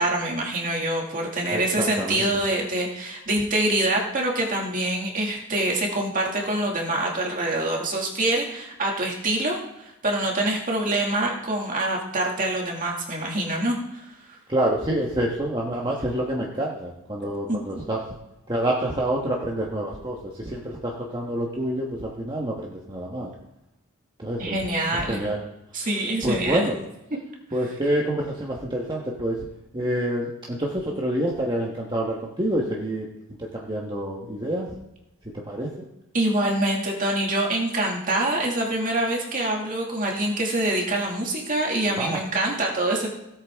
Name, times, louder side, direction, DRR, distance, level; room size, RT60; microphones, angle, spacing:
voice 1, 0.0-14.4 17.5-17.6 24.4-25.2 25.7-26.7 36.1-43.1, right 1 dB, 40° right, -1 dB, 2.3 m, -25 dB
voice 2, 1.5-2.3 14.5-18.0 18.5-23.3 24.2-24.6 25.1-25.4 26.2-26.7 27.5-29.5 29.7-33.1 33.4-34.7 35.2-35.7 42.0-42.2, right 1 dB, 20° right, -2 dB, 1.3 m, -27 dB
17.0 x 8.3 x 3.6 m, 0.90 s
head